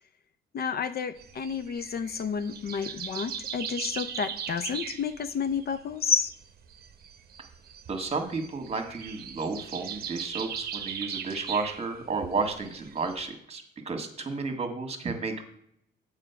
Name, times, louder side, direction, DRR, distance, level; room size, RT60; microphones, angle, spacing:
voice 1, 0.5-6.4, left 6 dB, 50° left, 12 dB, 0.6 m, -30 dB
sound 1, 1.2-13.3, right 8 dB, 50° right, 0.8 m, -39 dB
voice 2, 7.9-15.4, right 4 dB, 30° right, 6 dB, 1.7 m, -32 dB
7.4 x 5.1 x 6.8 m, 0.71 s
cardioid pair, 90°, 20 cm